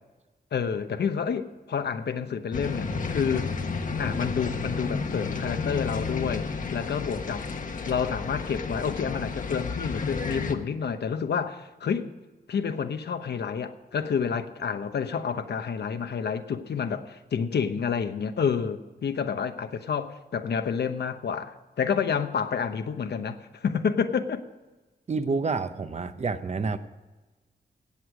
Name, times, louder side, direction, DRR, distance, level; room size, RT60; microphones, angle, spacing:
voice 1, 0.5-3.5 4.0-7.5 7.9-12.1 12.5-24.4, left 6 dB, 85° left, 9 dB, 1.0 m, -29 dB
sound 1, 2.5-10.5, left 4 dB, 50° left, 1.1 m, -31 dB
voice 2, 25.1-26.8, right 4 dB, 40° right, 10 dB, 0.8 m, -28 dB
17.0 x 8.2 x 4.8 m, 1.2 s
wide cardioid pair, 155°, 17 cm